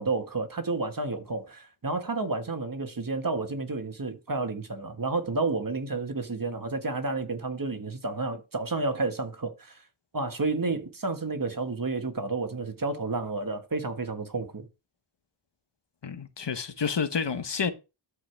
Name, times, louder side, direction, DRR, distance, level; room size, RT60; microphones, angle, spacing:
voice 1, 0.0-9.8 10.1-14.7, right 3 dB, 40° right, 1.6 m, -31 dB
voice 2, 16.0-17.7, left 6 dB, 55° left, 1.1 m, -29 dB
13.0 x 4.9 x 3.4 m
cardioid pair, 45°, 49 cm